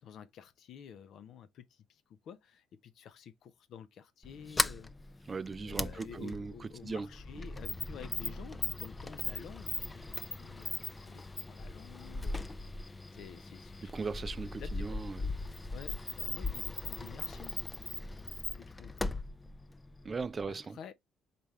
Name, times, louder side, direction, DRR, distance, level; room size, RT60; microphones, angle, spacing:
voice 1, 0.0-4.9 5.6-12.8 13.1-13.9 14.6-15.0 15.7-17.5 18.6-19.0 20.5-20.9, left 8 dB, 65° left, 0.7 m, -51 dB
Sliding door, 4.2-20.6, left 2 dB, 20° left, 0.5 m, -39 dB
voice 2, 5.3-6.5 6.8-7.1 13.8-15.3 20.0-20.8, right 4 dB, 35° right, 0.4 m, -38 dB
4.2 x 3.4 x 3.1 m
supercardioid pair, 70°, 0 cm